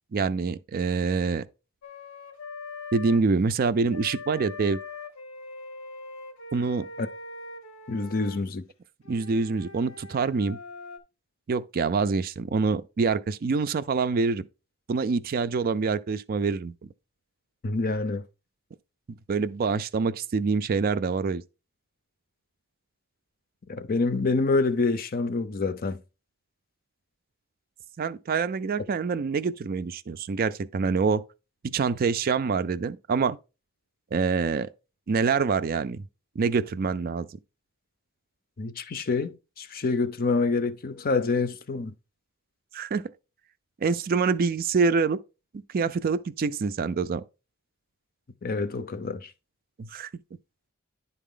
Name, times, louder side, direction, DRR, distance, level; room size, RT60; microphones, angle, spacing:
voice 1, 0.1-1.5 2.9-4.8 6.5-6.9 9.1-10.6 11.5-14.5 14.9-16.7 19.1-21.4 28.0-31.2 31.6-33.4 34.1-34.7 35.1-36.0 36.4-37.3 42.7-43.0 43.8-45.2 45.7-47.2 49.8-50.1, right 4 dB, 45° right, 0.4 m, -26 dB
Wind instrument woodwind instrument, 1.8-3.2 3.9-8.4 9.0-11.0, left 3 dB, 90° left, 1.1 m, -42 dB
voice 2, 7.9-8.7 17.6-18.3 23.7-26.0 38.6-41.9 48.4-49.3, left 3 dB, 45° left, 0.6 m, -27 dB
10.0 x 4.1 x 3.7 m
head